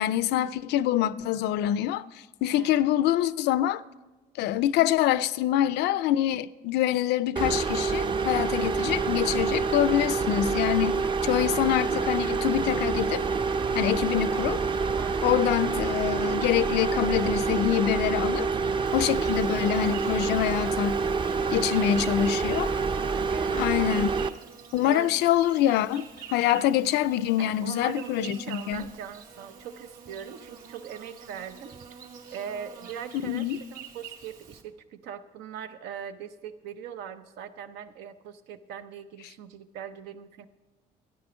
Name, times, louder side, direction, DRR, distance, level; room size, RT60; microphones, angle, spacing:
voice 1, 0.0-2.0 2.4-3.8 4.4-13.2 13.7-14.6 15.2-18.5 18.9-21.0 21.5-22.7 23.5-24.2 24.7-28.9 33.2-33.6, left 12 dB, 80° left, 0.4 m, -25 dB
sound 1, 7.4-24.3, right 5 dB, 30° right, 0.5 m, -27 dB
voice 2, 15.0-15.4 23.3-23.6 24.8-25.2 27.4-31.8 32.3-40.5, right 8 dB, 90° right, 0.8 m, -40 dB
Insect, 18.8-34.6, right 7 dB, 55° right, 2.2 m, -47 dB
13.0 x 10.5 x 5.0 m
cardioid pair, 110°, 17 cm